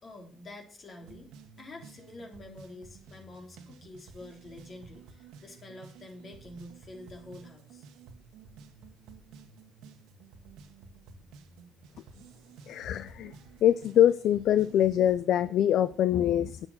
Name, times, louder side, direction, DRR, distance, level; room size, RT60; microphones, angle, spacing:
voice 1, 0.0-1.3 1.6-7.8, left 2 dB, 45° left, 3 dB, 3.9 m, -47 dB
sound 1, 1.0-15.2, right 5 dB, 75° right, 1.4 m, -52 dB
voice 2, 12.7-13.3 13.6-16.7, left 11 dB, 65° left, 16 dB, 0.4 m, -24 dB
9.6 x 9.0 x 6.0 m, 0.42 s
hypercardioid pair, 50°, 0 cm